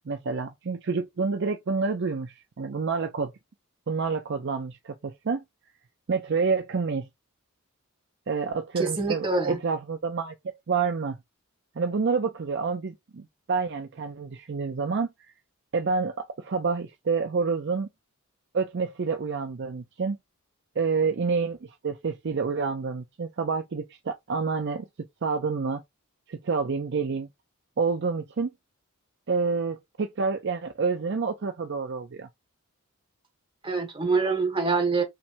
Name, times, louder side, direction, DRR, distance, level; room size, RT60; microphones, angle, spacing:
voice 1, 0.1-3.3 3.9-5.4 6.1-7.1 8.3-11.2 11.8-15.3 15.7-17.9 18.5-20.2 20.8-24.9 25.2-25.8 26.3-27.3 27.8-28.5 29.3-32.3, right 4 dB, 50° right, 0.5 m, -28 dB
voice 2, 8.8-9.6 33.6-35.0, right 4 dB, 25° right, 1.5 m, -25 dB
5.7 x 3.3 x 2.6 m
head